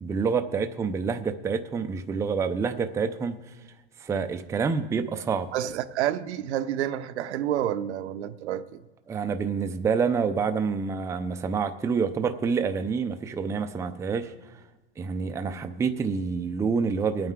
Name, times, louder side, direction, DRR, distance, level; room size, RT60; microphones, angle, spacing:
voice 1, 0.0-3.4 4.0-5.5 9.1-14.3 15.0-17.3, right 5 dB, 10° right, 0.4 m, -27 dB
voice 2, 5.5-8.6, right 11 dB, 85° right, 0.9 m, -29 dB
22.0 x 9.0 x 3.7 m
supercardioid pair, 135°, 33 cm